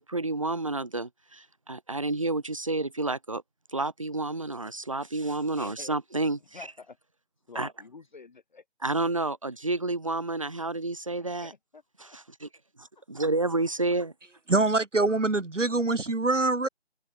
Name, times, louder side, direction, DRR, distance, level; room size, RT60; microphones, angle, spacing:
voice 1, 0.0-3.4 3.7-6.4 7.5-7.7 8.8-11.5 12.0-12.5 12.8-14.1, right 2 dB, 30° right, 0.8 m, -30 dB
voice 2, 5.6-6.0 6.5-7.0 7.5-8.6 11.2-11.8 12.1-12.2 13.0-13.1, left 4 dB, 40° left, 7.5 m, -47 dB
voice 3, 14.5-16.7, right 2 dB, 85° right, 1.5 m, -24 dB
figure-of-eight pair, 160°, 36 cm